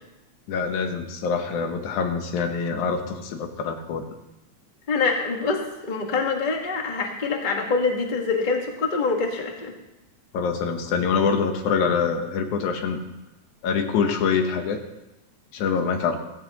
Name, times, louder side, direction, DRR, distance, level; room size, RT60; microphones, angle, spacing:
voice 1, 0.5-4.0 10.3-13.0 13.6-14.8 15.5-16.2, left 5 dB, 80° left, 5 dB, 2.5 m, -25 dB
voice 2, 4.9-9.7, left 4 dB, 30° left, 1 dB, 0.9 m, -25 dB
15.5 x 15.5 x 3.0 m, 0.96 s
omnidirectional pair, 3.4 m